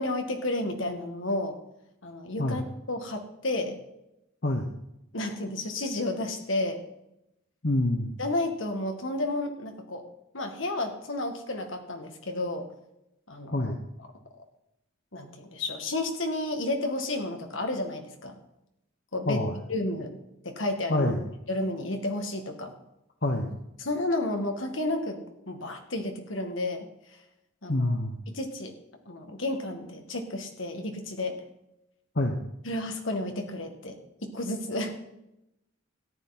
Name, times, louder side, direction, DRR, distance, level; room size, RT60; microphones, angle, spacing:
voice 1, 0.0-1.5 2.0-3.8 5.1-6.8 8.2-10.0 10.3-12.6 13.3-13.7 15.1-18.4 19.1-19.4 19.7-20.2 20.4-21.1 21.5-22.7 23.8-26.9 27.6-28.0 28.3-28.7 29.1-31.4 32.7-34.9, left 2 dB, 70° left, 5 dB, 2.0 m, -31 dB
voice 2, 7.6-8.1 13.5-13.8 19.3-19.5 20.9-21.2 23.2-23.6 27.7-28.1 32.1-32.4, left 1 dB, 50° left, 3 dB, 1.1 m, -26 dB
14.0 x 10.5 x 4.3 m, 0.85 s
head